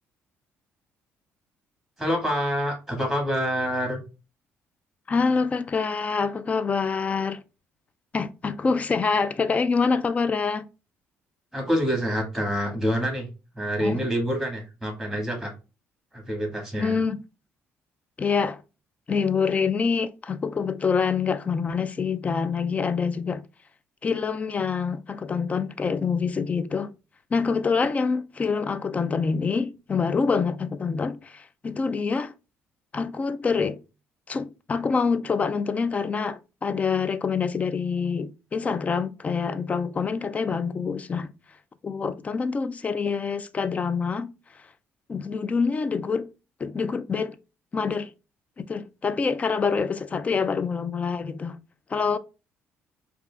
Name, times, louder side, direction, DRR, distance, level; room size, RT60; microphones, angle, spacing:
voice 1, 2.0-4.0 11.5-13.3 13.5-15.5 16.1-17.0, equal, ahead, 1.6 m, -26 dB
voice 2, 5.1-7.4 8.1-10.7 13.8-14.0 16.8-17.2 18.2-18.6 19.1-23.4 24.0-26.9 27.3-32.3 32.9-33.8 34.3-41.3 41.8-44.3 45.1-46.3 46.6-47.4 47.7-48.1 48.6-51.6 51.9-52.2, left 5 dB, 25° left, 0.3 m, -26 dB
4.7 x 2.5 x 2.3 m
cardioid pair, 110°, 5 cm